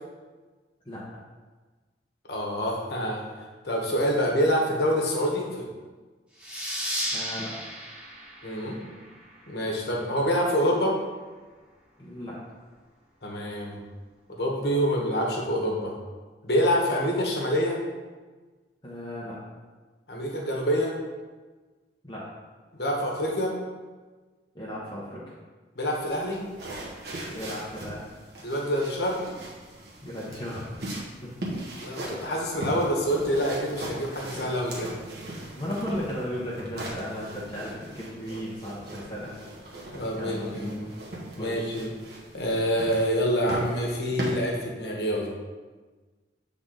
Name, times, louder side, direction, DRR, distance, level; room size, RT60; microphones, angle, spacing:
voice 1, 2.3-3.2 3.6-5.7 8.4-8.8 9.5-11.0 13.2-13.8 14.3-15.9 16.4-17.8 20.1-20.9 22.7-23.5 25.8-26.4 28.4-29.2 31.8-34.9 39.9-40.9 41.4-41.9 42.3-45.3, equal, 65° left, -1 dB, 1.3 m, -26 dB
sound 1, 6.4-9.6, equal, 5° right, 1.4 m, -34 dB
voice 2, 7.1-7.5 12.0-12.4 18.8-19.4 22.0-22.3 24.5-25.2 27.3-28.0 30.0-30.9 31.2-31.4 35.5-39.3 39.8-40.9 41.4-41.7, equal, 25° left, -7 dB, 1.1 m, -35 dB
sound 2, 25.9-44.4, right 1 dB, 60° right, 1.2 m, -39 dB
7.8 x 3.8 x 3.9 m, 1.3 s
head